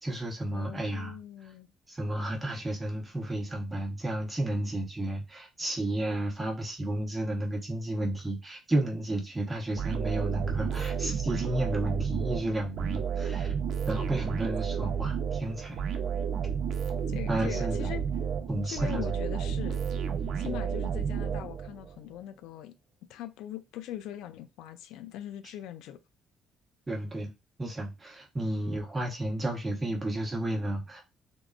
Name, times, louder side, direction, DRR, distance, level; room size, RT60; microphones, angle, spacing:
voice 1, 0.0-1.2 1.9-13.5 13.9-15.8 17.3-17.9 18.5-19.1 20.4-20.6 26.9-27.3 27.6-31.1, right 1 dB, 15° right, 0.9 m, -32 dB
voice 2, 0.5-1.7 17.1-18.0 18.6-19.8 20.4-22.8 23.1-26.0, left 12 dB, 90° left, 0.3 m, -41 dB
sound 1, 9.8-21.9, right 7 dB, 60° right, 0.5 m, -31 dB
3.6 x 2.0 x 2.3 m
cardioid pair, 125°, 0 cm